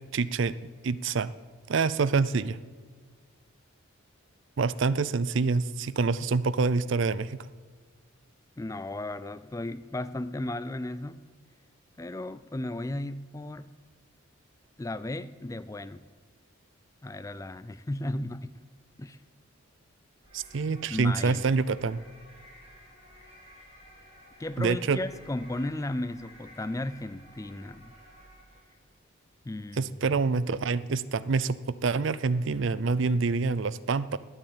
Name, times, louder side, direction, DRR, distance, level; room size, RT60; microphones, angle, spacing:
voice 1, 0.1-0.5 0.8-1.3 1.7-2.6 4.6-7.4 20.3-22.0 24.6-25.0 29.8-34.2, right 4 dB, 60° right, 17 dB, 0.5 m, -26 dB
voice 2, 8.6-11.2 12.0-13.7 14.8-16.0 17.0-18.5 19.0-19.2 20.9-21.4 24.4-27.9 29.5-29.9, left 1 dB, 15° left, 14 dB, 0.3 m, -35 dB
sound 1, 20.2-28.8, equal, 25° right, 5.2 m, -53 dB
11.5 x 8.8 x 8.6 m, 1.5 s
head